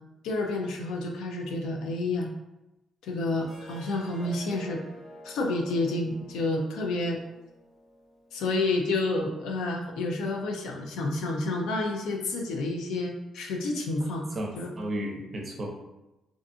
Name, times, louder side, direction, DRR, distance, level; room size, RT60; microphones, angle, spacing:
voice 1, 0.2-2.3 3.0-4.8 5.2-7.2 8.3-14.3 14.6-14.7, left 2 dB, 85° left, 1 dB, 0.4 m, -29 dB
Harp, 3.4-8.6, equal, 65° left, 1.0 m, -49 dB
voice 2, 14.3-15.7, right 1 dB, 35° right, 1 dB, 0.5 m, -33 dB
2.5 x 2.3 x 2.6 m, 0.97 s
cardioid pair, 90°, 0 cm